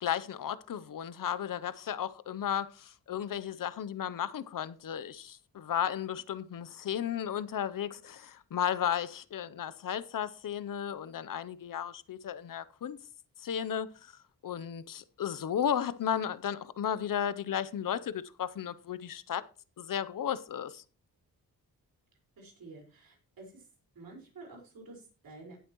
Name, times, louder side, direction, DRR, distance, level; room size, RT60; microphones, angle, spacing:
voice 1, 0.0-13.0 13.4-14.1 14.4-19.4 19.8-20.8, left 9 dB, 65° left, 0.7 m, -34 dB
voice 2, 22.4-23.6 23.9-25.6, right 3 dB, 70° right, 4.9 m, -50 dB
17.0 x 8.1 x 3.1 m
wide cardioid pair, 115°, 36 cm